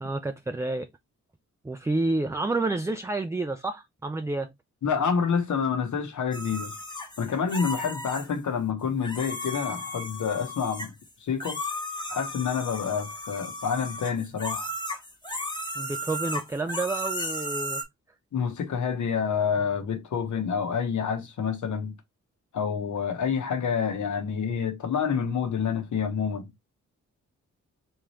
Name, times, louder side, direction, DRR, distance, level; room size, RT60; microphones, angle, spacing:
voice 1, 0.0-0.9 1.6-4.5 15.8-17.8, right 2 dB, 10° right, 0.4 m, -29 dB
voice 2, 4.8-6.7 7.2-10.9 11.2-11.6 12.1-14.7 18.3-21.9 22.5-26.5, left 6 dB, 75° left, 1.1 m, -28 dB
sound 1, 6.3-8.3 9.0-11.1 11.4-17.8, left 1 dB, 15° left, 1.0 m, -35 dB
3.7 x 2.9 x 3.1 m
cardioid pair, 75°, 30 cm